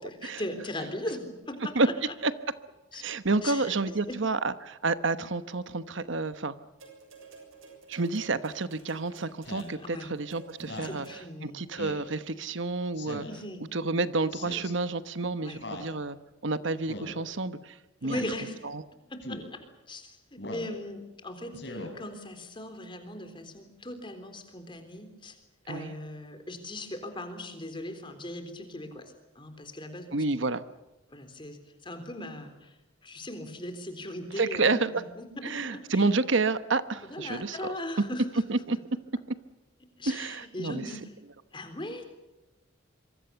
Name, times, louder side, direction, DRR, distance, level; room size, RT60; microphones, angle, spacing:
voice 1, 0.0-2.1 2.9-3.0 3.4-4.2 9.8-10.1 10.8-11.6 13.3-13.6 15.4-15.6 18.0-18.6 19.1-19.6 19.9-25.4 25.7-30.2 31.1-36.1 37.0-38.4 40.0-41.1 41.5-42.1, left 1 dB, 25° left, 8 dB, 3.7 m, -39 dB
voice 2, 2.9-6.5 7.9-11.0 11.4-13.2 13.7-16.2 16.4-17.7 18.0-18.2 25.7-25.9 30.1-30.6 34.4-34.9 35.4-37.6 38.5-38.8 40.1-40.8, right 3 dB, 65° right, 12 dB, 1.0 m, -29 dB
sound 1, 6.8-11.5 12.5-12.6, right 4 dB, 85° right, 6.8 m, -52 dB
Speech synthesizer, 9.4-9.8 10.6-11.0 11.8-12.1 13.0-13.4 14.3-14.7 15.6-15.9 16.9-17.2 18.1-18.4 19.2-19.5 20.4-20.7 21.5-21.9, left 1 dB, 55° left, 4.5 m, -39 dB
26.0 x 24.0 x 7.0 m, 1.0 s
head